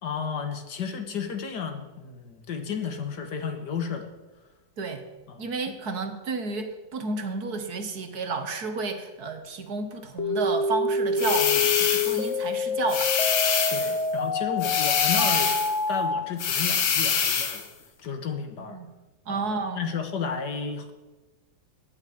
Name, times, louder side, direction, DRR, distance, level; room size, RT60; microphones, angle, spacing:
voice 1, 0.0-4.1 5.3-5.4 13.7-15.6 15.9-17.6 18.0-18.8 19.3-19.5 19.8-20.9, left 6 dB, 60° left, 7 dB, 1.9 m, -32 dB
voice 2, 5.4-13.1 18.7-18.9 19.3-19.8, right 4 dB, 55° right, 7 dB, 1.7 m, -31 dB
sound 1, 10.2-16.2, left 3 dB, 45° left, 1.2 m, -27 dB
sound 2, 11.2-12.3 12.9-14.0 14.6-15.8 16.4-17.6, left 7 dB, 80° left, 2.1 m, -25 dB
16.5 x 6.5 x 9.3 m, 1.1 s
omnidirectional pair, 2.1 m